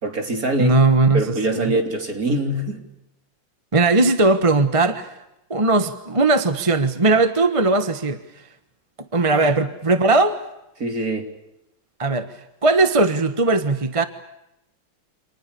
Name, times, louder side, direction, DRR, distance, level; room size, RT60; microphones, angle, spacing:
voice 1, 0.0-0.8 1.1-2.8 10.8-11.3, right 1 dB, 50° right, 3.9 m, -23 dB
voice 2, 0.6-1.2 1.5-1.7 3.7-5.2 5.5-8.2 9.1-10.4 12.0-12.3 12.6-14.0, right 3 dB, 20° right, 1.3 m, -18 dB
30.0 x 27.0 x 6.9 m
omnidirectional pair, 2.0 m